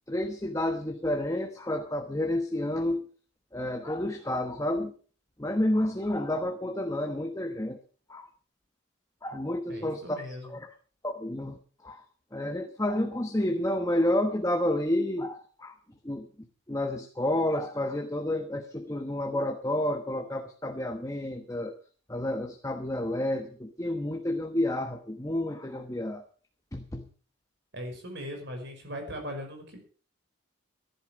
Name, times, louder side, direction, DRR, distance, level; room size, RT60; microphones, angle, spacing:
voice 1, 0.1-3.1 3.5-4.9 5.4-7.8 8.1-8.3 9.2-10.7 11.0-12.0 12.3-15.8 16.0-16.3 16.7-21.8 22.1-26.2 26.7-27.1, left 1 dB, 15° left, 6 dB, 1.1 m, -30 dB
voice 2, 9.7-10.6 27.7-29.8, equal, 55° right, 4 dB, 5.5 m, -39 dB
14.5 x 11.0 x 6.2 m, 0.41 s
head